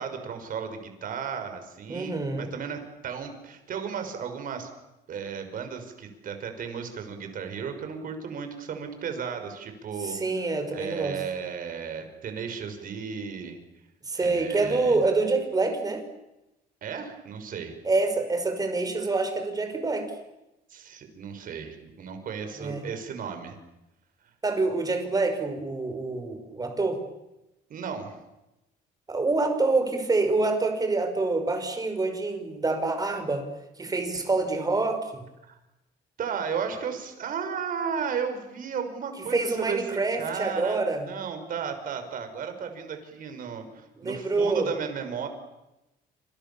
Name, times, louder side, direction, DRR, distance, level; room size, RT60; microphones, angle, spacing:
voice 1, 0.0-4.7 5.1-10.2 10.4-13.6 14.2-15.1 16.8-17.8 20.7-23.6 27.7-28.2 35.5-35.6 36.2-39.8 40.2-40.8 41.1-45.3, right 6 dB, 55° right, 7 dB, 6.1 m, -34 dB
voice 2, 1.9-2.5 10.0-11.2 14.0-16.0 17.8-20.1 22.6-22.8 24.4-27.0 29.1-33.5 33.8-35.2 39.3-41.0 44.0-44.7, right 3 dB, 20° right, 7 dB, 5.5 m, -26 dB
28.0 x 27.0 x 7.2 m, 0.94 s
cardioid pair, 110°, 17 cm